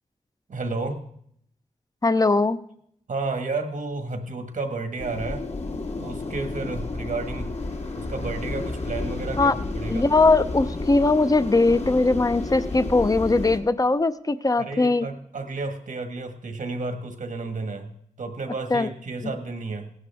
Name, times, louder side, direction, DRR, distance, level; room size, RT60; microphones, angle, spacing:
voice 1, 0.5-1.0 3.1-5.4 6.0-7.5 8.0-10.0 14.6-19.9, right 3 dB, 80° right, 6 dB, 1.6 m, -32 dB
voice 2, 2.0-2.6 9.4-9.6 9.9-15.1 18.7-18.9 19.2-19.3, left 3 dB, 25° left, 13 dB, 0.6 m, -20 dB
sound 1, 5.0-13.6, left 3 dB, 55° left, 1.6 m, -31 dB
17.0 x 11.0 x 3.5 m, 0.69 s
wide cardioid pair, 65°, 13 cm